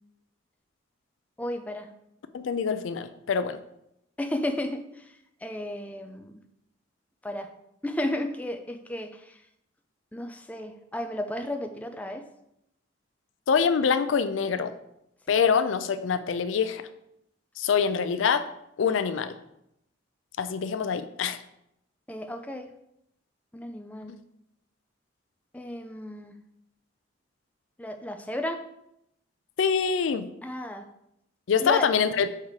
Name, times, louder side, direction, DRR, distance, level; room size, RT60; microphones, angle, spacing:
voice 1, 1.4-1.9 4.2-5.1 5.4-6.4 7.2-7.5 7.8-9.4 10.1-12.2 15.3-15.4 22.1-22.7 23.5-24.1 25.5-26.3 27.8-28.6 30.4-30.8 31.6-31.9, left 1 dB, 10° left, 6 dB, 0.4 m, -33 dB
voice 2, 2.3-3.6 13.5-14.7 15.3-16.8 17.6-18.4 18.8-19.4 20.4-21.4 29.6-30.2 31.5-32.3, left 6 dB, 75° left, 11 dB, 0.4 m, -25 dB
5.6 x 3.6 x 4.7 m, 0.80 s
head